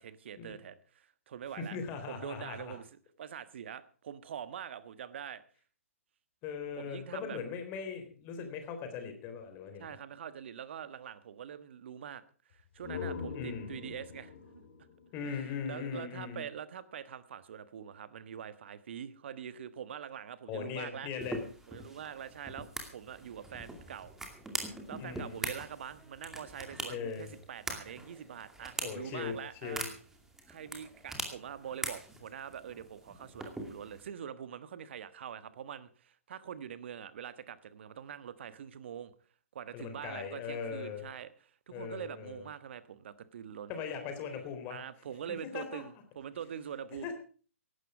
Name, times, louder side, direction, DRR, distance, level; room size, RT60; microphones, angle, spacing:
voice 1, 0.0-1.8 2.1-2.9 3.2-5.4 6.8-7.4 9.8-12.2 12.5-14.6 15.2-21.1 21.7-24.2 24.6-29.8 30.5-39.1 39.5-43.7 44.7-47.1, right 8 dB, 50° right, 14 dB, 1.3 m, -44 dB
voice 2, 1.6-2.7 6.4-10.0 13.3-13.8 15.1-16.4 20.5-21.4 25.0-25.4 26.9-27.3 28.8-29.3 29.6-29.9 39.7-41.1 41.7-42.4 43.7-44.8 45.3-45.8 47.0-47.1, left 6 dB, 25° left, 6 dB, 3.7 m, -39 dB
sound 1, 12.5-16.2, left 6 dB, 50° left, 4.5 m, -43 dB
sound 2, 21.2-34.1, right 1 dB, 5° right, 2.4 m, -43 dB
16.5 x 12.0 x 4.9 m, 0.41 s
figure-of-eight pair, 125°, 8 cm